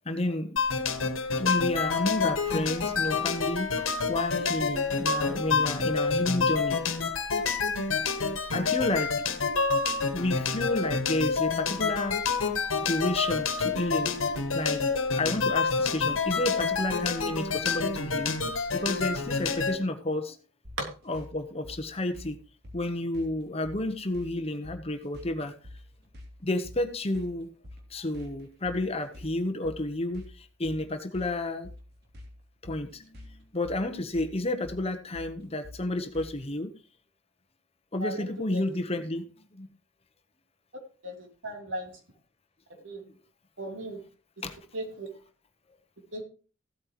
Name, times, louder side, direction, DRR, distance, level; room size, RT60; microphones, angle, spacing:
voice 1, 0.0-0.6 1.4-6.8 8.5-9.1 10.1-12.2 12.8-14.1 14.5-14.8 15.2-20.4 21.1-22.4 22.7-25.5 26.4-27.5 27.9-31.7 32.6-36.7 37.9-39.3 39.6-39.7 44.4-44.6, left 1 dB, 30° left, 8 dB, 1.1 m, -31 dB
sound 1, 0.6-19.8, left 5 dB, 90° left, 1.5 m, -28 dB
sound 2, 20.6-36.5, left 1 dB, 50° right, 3.0 m, -48 dB
voice 2, 38.0-38.7 41.0-42.0 42.8-43.0 43.6-44.0 44.7-45.1 46.1-46.2, right 1 dB, 70° right, 1 dB, 3.4 m, -37 dB
15.5 x 8.7 x 3.1 m, 0.36 s
head